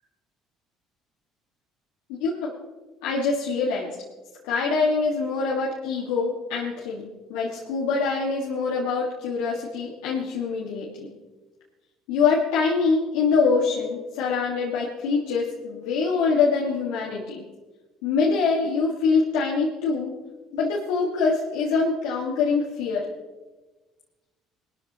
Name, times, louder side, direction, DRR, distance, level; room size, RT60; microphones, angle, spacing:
voice 1, 2.1-2.5 3.0-3.9 4.5-11.1 12.1-17.4 18.0-20.1 20.5-23.1, left 4 dB, 80° left, -4 dB, 1.9 m, -24 dB
19.5 x 13.5 x 3.1 m, 1.2 s
supercardioid pair, 70°, 0 cm